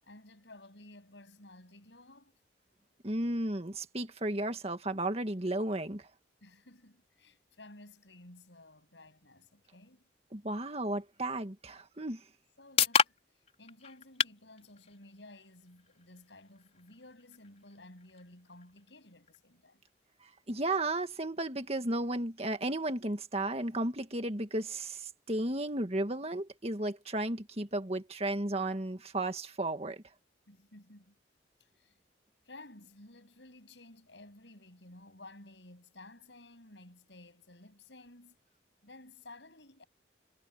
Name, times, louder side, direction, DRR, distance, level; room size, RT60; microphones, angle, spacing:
voice 1, 0.0-2.4 6.4-10.0 12.6-19.8 30.5-31.2 31.6-32.0 32.5-38.4 38.8-39.8, left 2 dB, 75° left, 7.8 m, -54 dB
voice 2, 3.0-6.0 10.3-12.2 20.5-30.0, right 1 dB, 35° right, 1.9 m, -34 dB
sound 1, 12.0-25.9, left 6 dB, 35° left, 4.7 m, -39 dB
head